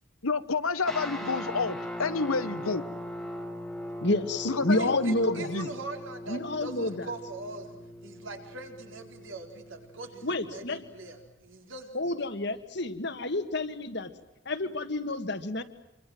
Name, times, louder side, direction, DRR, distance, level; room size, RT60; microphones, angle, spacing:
voice 1, 0.2-2.9 4.4-5.7, left 4 dB, 85° left, 12 dB, 1.4 m, -29 dB
sound 1, 0.8-11.3, equal, ahead, 2.0 m, -40 dB
voice 2, 4.0-5.5 6.3-7.1 10.2-10.8 11.9-14.1 14.5-15.6, left 2 dB, 55° left, 9 dB, 1.9 m, -29 dB
voice 3, 4.7-7.7 8.0-12.1, right 3 dB, 65° right, 4 dB, 4.4 m, -42 dB
27.0 x 25.0 x 7.9 m, 0.88 s
head